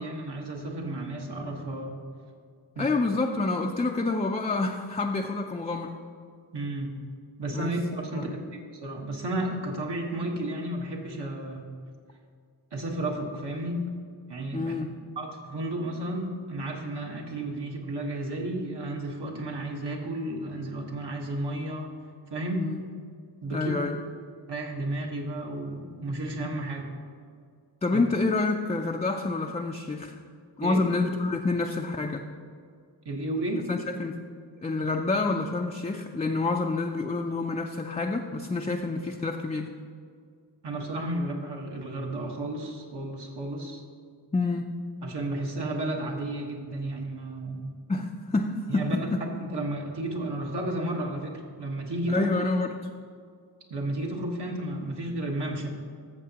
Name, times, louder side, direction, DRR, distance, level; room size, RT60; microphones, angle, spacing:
voice 1, 0.0-2.0 2.7-2.9 6.5-7.0 7.4-11.7 12.7-13.9 14.3-14.7 15.2-21.9 22.3-22.7 23.4-23.7 24.4-26.9 27.9-28.0 30.6-30.8 33.0-33.7 40.6-43.8 45.0-47.7 48.7-52.3 53.7-55.7, right 1 dB, 70° right, -1 dB, 1.4 m, -32 dB
voice 2, 2.8-5.9 7.5-7.7 8.1-8.3 14.5-15.0 22.6-22.8 23.5-24.0 27.8-30.2 30.6-32.3 33.7-34.3 34.6-39.7 44.3-44.7 47.9-49.2 52.1-52.8, left 3 dB, 15° left, 2 dB, 0.4 m, -28 dB
14.0 x 6.9 x 2.9 m, 2.2 s
wide cardioid pair, 85°, 42 cm